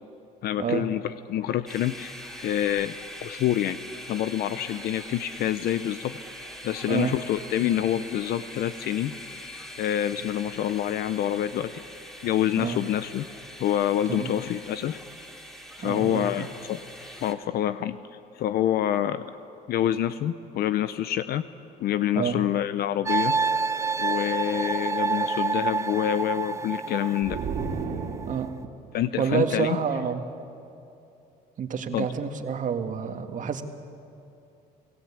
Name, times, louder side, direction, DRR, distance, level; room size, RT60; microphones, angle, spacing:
voice 1, 0.4-3.8 4.1-6.2 6.6-9.1 9.8-11.8 12.2-13.3 13.6-15.0 15.8-16.8 17.2-18.0 18.3-19.3 19.7-21.4 21.8-23.7 24.0-27.4 28.9-29.8 31.9-32.1, left 11 dB, 65° left, 13 dB, 0.7 m, -27 dB
sound 1, 1.7-17.3, equal, ahead, 2.9 m, -42 dB
voice 2, 15.8-16.5 22.2-22.4 28.3-28.5 29.2-30.2 31.6-33.6, right 6 dB, 50° right, 6 dB, 1.9 m, -28 dB
sound 2, 23.1-28.5, right 4 dB, 15° right, 0.5 m, -28 dB
sound 3, 27.2-28.8, right 5 dB, 70° right, 3.1 m, -32 dB
30.0 x 17.5 x 8.6 m, 2.7 s
cardioid pair, 110°, 17 cm